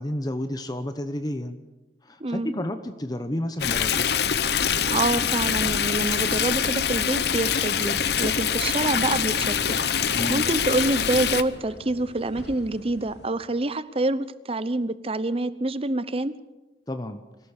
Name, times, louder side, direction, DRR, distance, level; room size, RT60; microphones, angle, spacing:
voice 1, 0.0-1.6 2.0-4.1 10.1-10.5 16.9-17.2, left 1 dB, 20° left, 8 dB, 0.9 m, -31 dB
voice 2, 2.2-2.5 4.9-9.8 10.3-16.3, right 2 dB, 30° right, 15 dB, 0.8 m, -26 dB
Stream, 3.6-11.4, left 8 dB, 60° left, 0.9 m, -24 dB
sound 1, 4.2-13.3, left 1 dB, 80° left, 2.4 m, -43 dB
24.5 x 16.5 x 6.7 m, 1.1 s
head